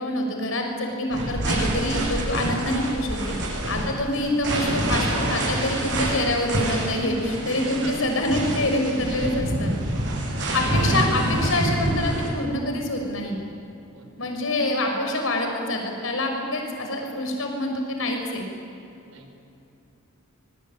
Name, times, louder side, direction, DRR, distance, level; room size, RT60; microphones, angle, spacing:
voice 1, 0.0-3.4 3.7-9.7 10.5-13.4 14.2-18.5, left 1 dB, 75° left, 3 dB, 6.1 m, -26 dB
sound 1, 1.1-12.3, right 1 dB, 60° right, 7.8 m, -26 dB
voice 2, 7.6-8.0 10.4-10.6 11.0-11.3 13.9-14.3 19.0-19.3, right 2 dB, 80° right, 5 dB, 4.9 m, -41 dB
25.5 x 22.5 x 8.9 m, 2.8 s
head